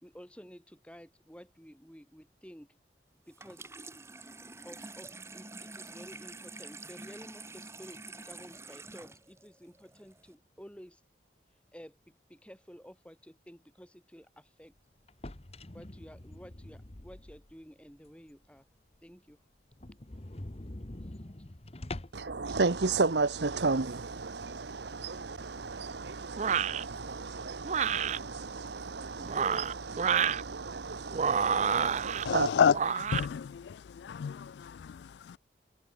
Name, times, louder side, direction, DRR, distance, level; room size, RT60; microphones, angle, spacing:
voice 1, 0.0-2.7 3.3-3.7 4.6-11.0 11.7-14.7 15.7-18.6 19.0-19.4 21.0-21.2, equal, 5° left, 5.6 m, -52 dB
Water tap faucet / Sink (filling or washing), 3.3-10.3, right 3 dB, 15° right, 3.6 m, -47 dB
sound 1, 15.1-17.6 18.1-18.2 18.6-18.7 18.9-19.0 19.3-19.4 19.7-22.3, left 1 dB, 35° left, 1.2 m, -44 dB
voice 2, 22.1-32.5, right 3 dB, 75° right, 1.0 m, -33 dB
sound 2, 26.4-26.8 27.6-28.2 29.2-30.4 31.1-32.2 32.7-33.3, right 7 dB, 40° right, 0.4 m, -28 dB
voice 3, 32.3-35.4, left 7 dB, 70° left, 0.3 m, -30 dB
head